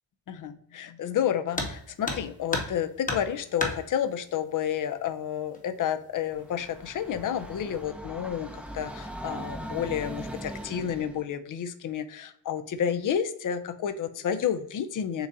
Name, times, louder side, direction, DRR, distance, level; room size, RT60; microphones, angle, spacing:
voice 1, 0.3-15.3, left 9 dB, 55° left, 11 dB, 0.5 m, -30 dB
sound 1, 1.5-1.8 2.0-2.8 3.0-3.8 5.0-5.1 5.5-5.6 6.4-6.8 7.1-7.5, left 2 dB, 20° left, 0.9 m, -31 dB
Train, 6.3-11.2, right 1 dB, 5° right, 0.5 m, -40 dB
6.7 x 2.4 x 2.6 m, 0.68 s
wide cardioid pair, 125°, 39 cm